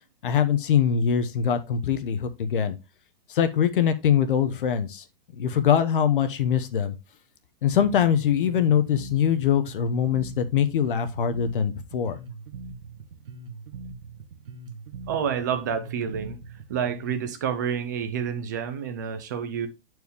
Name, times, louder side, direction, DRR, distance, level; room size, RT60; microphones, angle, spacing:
voice 1, 0.2-2.8 3.3-5.0 5.4-7.0 7.6-12.2, left 8 dB, 60° left, 1.0 m, -23 dB
Bass guitar, 7.7-17.3, right 4 dB, 65° right, 1.3 m, -41 dB
voice 2, 15.1-16.4 16.7-19.7, right 7 dB, 20° right, 0.4 m, -29 dB
8.0 x 4.6 x 3.5 m
hypercardioid pair, 175°, 29 cm